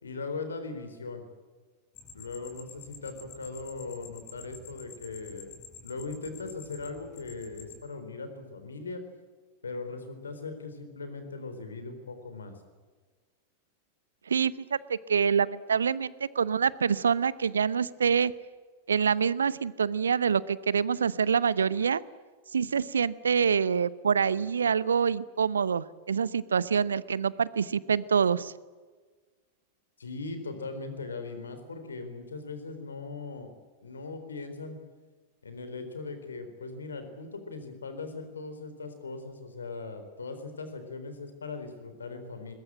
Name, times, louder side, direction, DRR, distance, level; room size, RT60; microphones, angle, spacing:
voice 1, 0.0-1.2 2.1-5.5 5.8-9.0 9.6-12.5 30.0-33.5 33.8-34.8 35.4-42.5, left 3 dB, 70° left, 9 dB, 4.0 m, -39 dB
sound 1, 1.9-7.8, left 6 dB, 35° left, 5.2 m, -49 dB
voice 2, 14.9-18.3 18.9-22.0 22.5-28.5, right 6 dB, 70° right, 20 dB, 0.8 m, -26 dB
21.5 x 21.5 x 9.0 m, 1.4 s
figure-of-eight pair, 90°, 0 cm